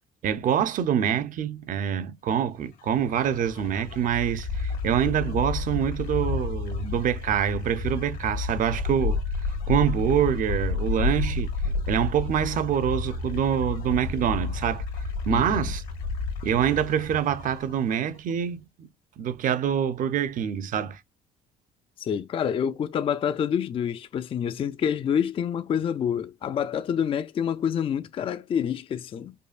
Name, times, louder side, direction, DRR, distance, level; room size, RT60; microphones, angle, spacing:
voice 1, 0.2-9.2 9.7-11.5 11.9-14.8 15.3-15.8 16.4-18.9 19.2-21.0, right 9 dB, 50° right, 0.6 m, -25 dB
sound 1, 2.6-18.3, left 4 dB, 90° left, 1.9 m, -31 dB
voice 2, 15.3-15.7 22.0-29.3, left 8 dB, 35° left, 0.3 m, -27 dB
5.3 x 2.1 x 2.4 m
cardioid pair, 110°, 17 cm